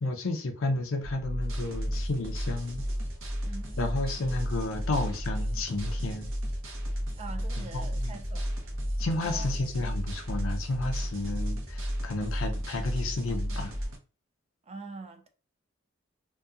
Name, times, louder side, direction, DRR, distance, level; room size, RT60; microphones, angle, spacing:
voice 1, 0.0-2.9 3.8-6.3 7.6-8.2 9.0-13.7, left 2 dB, 80° left, 0.6 m, -32 dB
sound 1, 1.0-13.9, equal, 15° left, 0.7 m, -33 dB
sound 2, 1.4-14.0, right 1 dB, 75° right, 0.7 m, -44 dB
voice 2, 3.4-3.8 7.2-8.6 9.2-9.5 14.6-15.3, right 3 dB, 30° right, 0.4 m, -44 dB
2.7 x 2.3 x 2.4 m
head